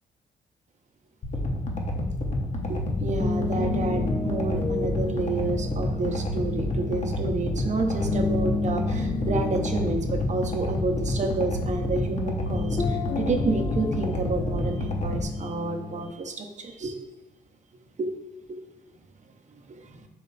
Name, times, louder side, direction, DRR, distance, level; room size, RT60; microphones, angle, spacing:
sound 1, 1.2-15.2, left 1 dB, 45° left, 0.8 m, -29 dB
sound 2, 2.7-16.1, left 4 dB, 30° left, 0.4 m, -32 dB
voice 1, 2.7-17.0 18.0-18.1 18.5-18.6 19.5-20.1, right 3 dB, 45° right, 5 dB, 0.7 m, -30 dB
4.2 x 3.1 x 3.9 m, 1.0 s
supercardioid pair, 55°, 17 cm